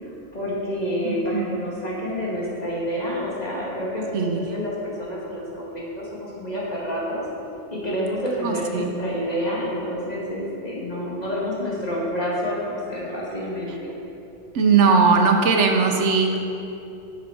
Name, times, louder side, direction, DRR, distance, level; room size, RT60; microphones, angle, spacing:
voice 1, 0.0-7.2 7.7-13.9, equal, 35° left, -6 dB, 2.1 m, -28 dB
voice 2, 1.0-1.5 4.1-4.4 8.4-8.9 14.5-16.4, right 5 dB, 75° right, 3 dB, 1.1 m, -19 dB
10.5 x 6.9 x 4.4 m, 2.8 s
omnidirectional pair, 1.2 m